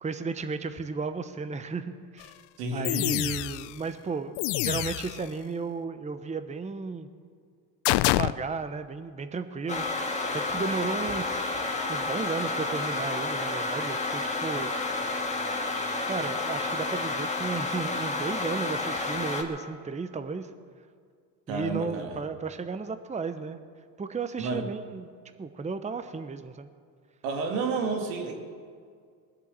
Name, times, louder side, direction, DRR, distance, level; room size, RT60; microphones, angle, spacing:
voice 1, 0.0-2.3 2.7-4.4 4.6-7.1 7.9-11.4 11.9-14.7 16.0-20.5 21.5-23.6 24.0-25.1 25.4-26.7, right 4 dB, 15° right, 10 dB, 0.8 m, -34 dB
sound 1, 2.2-2.3 2.8-3.8 4.4-5.3 7.9-8.3, left 18 dB, 60° left, 0.5 m, -26 dB
voice 2, 2.6-2.9 21.5-22.1 24.4-24.6 27.2-28.3, right 4 dB, 85° right, 3 dB, 2.2 m, -30 dB
Computer Fan, 9.7-19.4, left 3 dB, 15° left, 2.0 m, -30 dB
20.5 x 7.8 x 7.5 m, 2.1 s
supercardioid pair, 80°, 48 cm